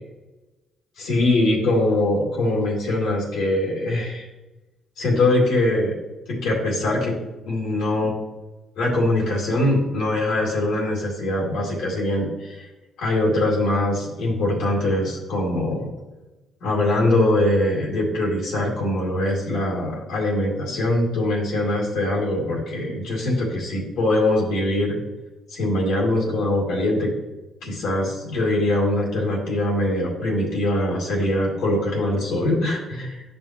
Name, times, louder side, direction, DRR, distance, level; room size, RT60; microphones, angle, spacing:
voice 1, 1.0-4.3 5.0-5.9 6.3-7.2 7.5-8.1 8.8-12.7 13.0-15.9 16.6-25.0 25.5-27.1 27.6-33.2, left 1 dB, 85° left, -3 dB, 2.1 m, -22 dB
10.0 x 5.5 x 2.9 m, 1.1 s
cardioid pair, 90°, 0 cm